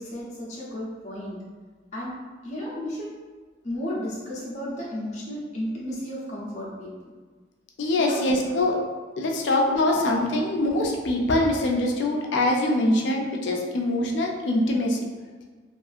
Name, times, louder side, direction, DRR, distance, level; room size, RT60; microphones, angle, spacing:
voice 1, 0.0-1.4 1.9-2.2 2.4-3.1 3.6-7.1 8.0-8.2 9.2-9.3 9.9-10.1, equal, 35° left, -7 dB, 0.7 m, -33 dB
voice 2, 7.8-8.7 9.2-15.0, left 1 dB, 70° left, 1 dB, 0.4 m, -23 dB
2.6 x 2.4 x 2.4 m, 1.4 s
head